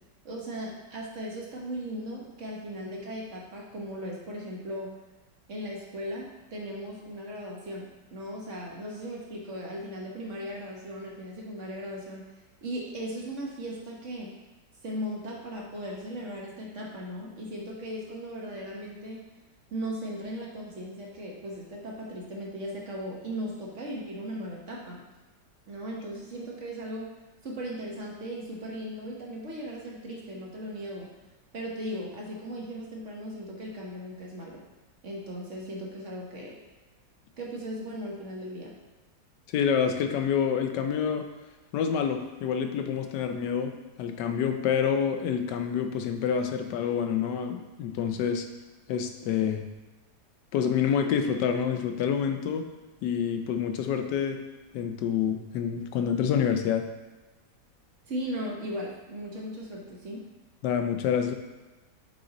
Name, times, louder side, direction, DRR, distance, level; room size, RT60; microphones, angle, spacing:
voice 1, 0.2-5.0 5.5-14.4 14.8-19.3 19.7-25.0 25.7-27.1 27.4-31.1 31.5-34.6 35.0-36.6 37.4-38.7 58.0-60.3, equal, 50° right, -2 dB, 1.2 m, -37 dB
voice 2, 39.5-41.3 41.7-48.4 48.9-49.6 50.5-52.6 53.0-54.4 54.7-56.9 60.6-61.3, left 7 dB, 80° left, 6 dB, 1.2 m, -27 dB
6.9 x 3.8 x 4.0 m, 1.2 s
omnidirectional pair, 1.8 m